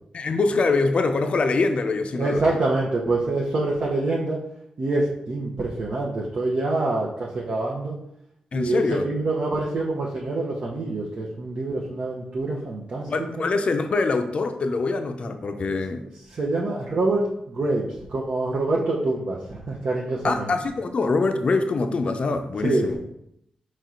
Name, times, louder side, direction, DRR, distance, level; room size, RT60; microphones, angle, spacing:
voice 1, 0.1-2.6 8.5-9.1 13.1-16.0 20.2-23.0, left 3 dB, 50° left, 6 dB, 0.5 m, -24 dB
voice 2, 2.1-4.4 4.8-8.0 8.5-13.1 13.4-13.5 15.6-15.7 16.3-20.5 22.6-23.0, right 2 dB, 60° right, -3 dB, 0.7 m, -26 dB
4.3 x 3.1 x 3.7 m, 0.77 s
cardioid pair, 60°, 2 cm